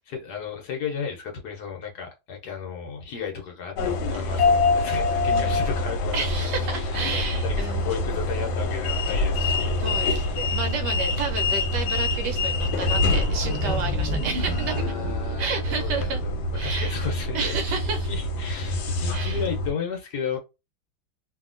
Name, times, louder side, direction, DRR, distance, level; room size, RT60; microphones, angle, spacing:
voice 1, 0.1-7.0 7.4-10.6 14.4-16.3 16.6-20.4, left 6 dB, 60° left, 1.2 m, -34 dB
sound 1, 3.8-19.7, left 2 dB, 85° left, 1.4 m, -25 dB
voice 2, 5.3-5.7 6.1-7.9 9.8-14.8 15.4-16.2 16.5-17.1 17.3-18.1 19.0-19.4, right 5 dB, 70° right, 1.1 m, -31 dB
sound 2, 12.8-16.6, left 3 dB, 5° left, 1.4 m, -34 dB
2.8 x 2.8 x 2.4 m
omnidirectional pair, 2.1 m